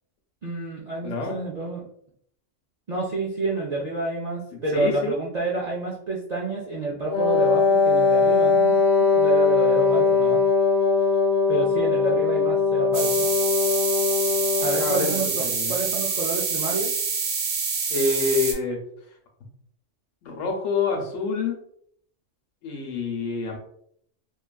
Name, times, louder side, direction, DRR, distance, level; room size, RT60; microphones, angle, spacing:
voice 1, 0.4-1.9 2.9-8.8 9.1-10.4 11.5-13.3 14.6-16.9, right 2 dB, 65° right, -4 dB, 0.4 m, -29 dB
voice 2, 1.0-1.4 4.5-5.1 14.8-15.8 17.9-18.8 20.2-21.6 22.6-23.6, left 3 dB, 90° left, 2 dB, 1.0 m, -27 dB
Wind instrument woodwind instrument, 7.1-15.2, left 4 dB, 65° left, 0.8 m, -20 dB
sound 1, 12.9-18.5, right 5 dB, 85° right, 1.0 m, -26 dB
2.7 x 2.3 x 2.3 m, 0.67 s
omnidirectional pair, 1.3 m